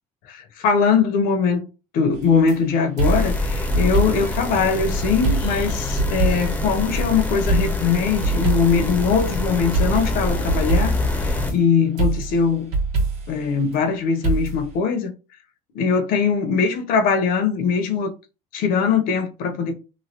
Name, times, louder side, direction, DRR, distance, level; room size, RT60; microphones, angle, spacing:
voice 1, 0.2-1.7 1.9-12.8 13.3-15.1 15.7-18.1 18.5-19.7, left 5 dB, 65° left, 0.8 m, -21 dB
sound 1, 2.1-2.6 3.0-4.4 4.7-4.8 5.2-7.1 7.5-8.9 9.7-11.6 12.0-13.4 14.2-14.8, right 3 dB, 75° right, 1.4 m, -24 dB
sound 2, 3.0-11.5, left 2 dB, 10° left, 0.7 m, -25 dB
3.1 x 2.5 x 2.8 m
supercardioid pair, 95°, 16 cm